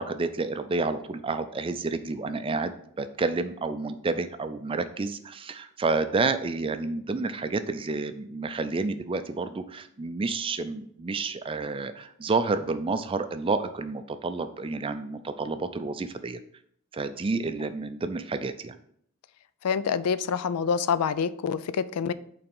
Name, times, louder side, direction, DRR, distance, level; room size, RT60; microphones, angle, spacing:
voice 1, 0.0-16.4 16.9-18.8, right 3 dB, 25° right, 10 dB, 0.4 m, -30 dB
voice 2, 19.6-22.1, left 6 dB, 90° left, 15 dB, 0.4 m, -26 dB
5.6 x 4.0 x 5.3 m, 0.66 s
head